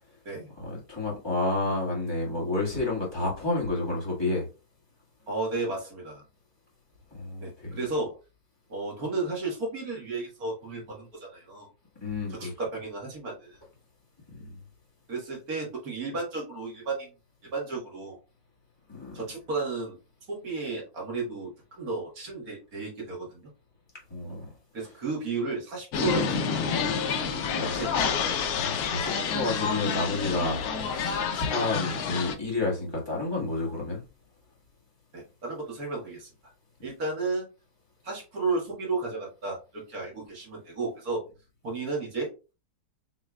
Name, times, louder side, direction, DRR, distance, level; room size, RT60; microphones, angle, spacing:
voice 1, 0.6-4.5 7.1-7.8 12.0-12.5 14.3-14.6 18.9-19.2 24.1-24.5 27.5-27.8 28.6-34.0, left 2 dB, 15° left, 1.8 m, -30 dB
voice 2, 5.3-6.2 7.4-8.2 8.7-11.7 12.3-13.6 15.1-17.1 17.5-18.2 19.1-20.0 20.3-23.4 24.7-26.6 27.6-28.2 35.1-36.3 36.8-37.5 38.0-41.2 41.6-42.3, right 3 dB, 65° right, 2.0 m, -33 dB
sound 1, 25.9-32.4, left 6 dB, 70° left, 1.1 m, -28 dB
6.1 x 3.2 x 2.3 m
omnidirectional pair, 1.7 m